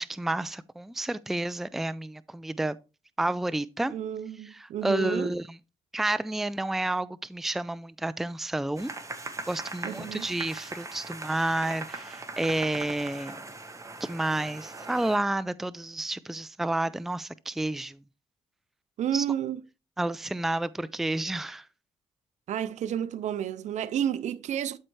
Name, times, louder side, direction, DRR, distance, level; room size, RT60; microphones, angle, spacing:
voice 1, 0.0-2.8 3.2-3.9 4.4-5.6 5.9-8.9 9.5-13.4 14.0-18.0 19.1-19.2 20.0-21.7, right 2 dB, ahead, 0.4 m, -30 dB
voice 2, 3.9-5.4 9.8-10.3 19.0-19.6 22.5-24.8, right 9 dB, 70° right, 0.5 m, -31 dB
sound 1, 8.8-15.2, right 3 dB, 25° right, 1.4 m, -40 dB
12.0 x 4.4 x 3.2 m
cardioid pair, 80°, 12 cm